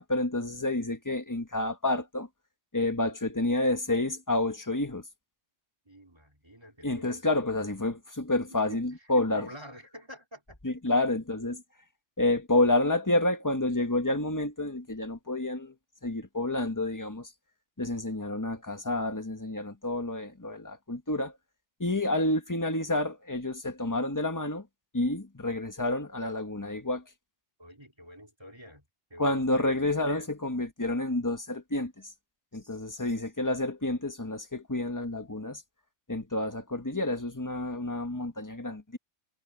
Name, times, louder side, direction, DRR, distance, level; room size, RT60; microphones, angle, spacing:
voice 1, 0.0-2.3 2.7-5.0 6.8-9.5 10.6-11.6 12.2-15.7 16.0-17.3 17.8-21.3 21.8-24.7 24.9-27.0 29.2-31.9 32.5-35.6 36.1-39.0, left 2 dB, 15° left, 1.7 m, -29 dB
voice 2, 5.9-7.2 8.5-9.1 9.3-10.6 27.6-29.8 32.5-32.9, equal, 20° right, 4.1 m, -48 dB
omnidirectional pair, 1.3 m